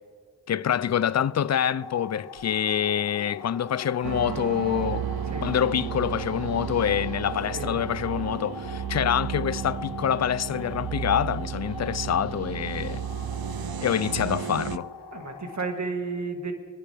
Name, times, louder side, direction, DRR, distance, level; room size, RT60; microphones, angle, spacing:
voice 1, 0.5-5.1 5.4-13.0 13.8-14.9, left 9 dB, 45° left, 0.4 m, -26 dB
sound 1, 1.8-15.7, left 6 dB, 75° left, 0.9 m, -42 dB
sound 2, 4.0-14.8, right 9 dB, 65° right, 0.6 m, -33 dB
voice 2, 15.1-16.5, right 3 dB, 45° right, 1.8 m, -32 dB
26.0 x 10.0 x 3.5 m
cardioid pair, 40°, 40 cm